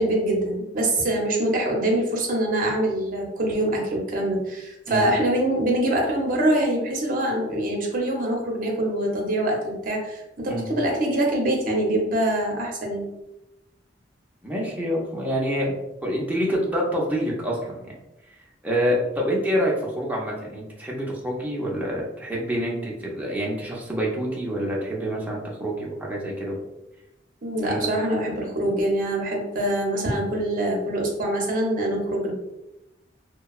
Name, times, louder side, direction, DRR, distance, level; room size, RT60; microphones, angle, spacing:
voice 1, 0.0-13.1 27.4-32.3, right 1 dB, 50° right, 0 dB, 0.6 m, -24 dB
voice 2, 14.4-17.8 18.6-26.6 27.6-27.9, equal, 10° right, -3 dB, 0.5 m, -27 dB
2.8 x 2.2 x 2.3 m, 0.94 s
head